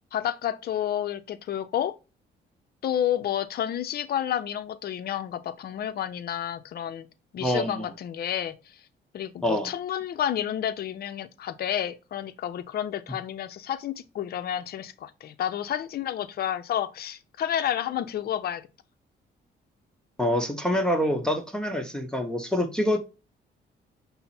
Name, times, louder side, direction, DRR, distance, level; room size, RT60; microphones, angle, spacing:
voice 1, 0.0-2.0 2.8-7.1 7.3-8.6 9.1-18.6, left 10 dB, 50° left, 0.5 m, -30 dB
voice 2, 7.4-7.9 9.4-9.7 20.2-23.0, equal, 5° left, 0.8 m, -26 dB
5.5 x 2.0 x 4.1 m
cardioid pair, 90°, 20 cm